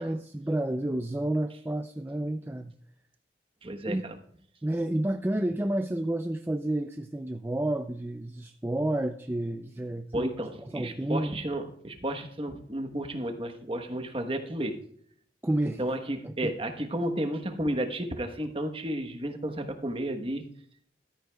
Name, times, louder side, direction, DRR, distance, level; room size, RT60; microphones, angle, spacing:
voice 1, 0.0-2.7 3.9-4.0 4.6-10.3 10.7-11.3 15.4-15.8 16.2-16.5, right 1 dB, 10° right, 7 dB, 0.4 m, -30 dB
voice 2, 3.6-4.2 10.1-14.8 15.8-20.4, right 1 dB, 30° right, 6 dB, 1.1 m, -32 dB
14.0 x 13.0 x 2.3 m, 0.63 s
head